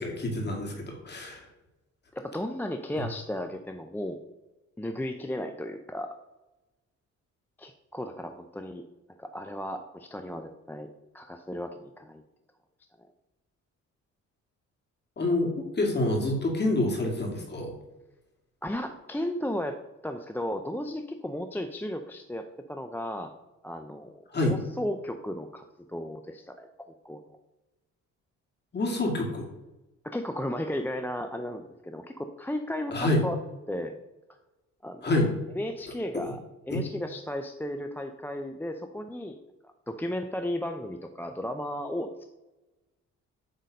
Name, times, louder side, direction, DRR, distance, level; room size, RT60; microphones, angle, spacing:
voice 1, 0.0-1.4 15.2-17.7 24.3-24.6 28.7-29.5 32.9-33.2 35.0-35.3 36.7-36.8, left 2 dB, 35° left, 0 dB, 2.3 m, -27 dB
voice 2, 2.1-4.2 4.8-6.2 7.6-8.8 9.2-10.9 11.1-12.2 18.6-23.3 23.6-27.2 30.0-33.4 33.7-33.9 34.8-35.2 35.6-36.4 36.7-39.4 39.6-42.3, left 1 dB, 5° left, 6 dB, 0.5 m, -35 dB
8.2 x 4.0 x 5.2 m, 1.0 s
cardioid pair, 90°, 30 cm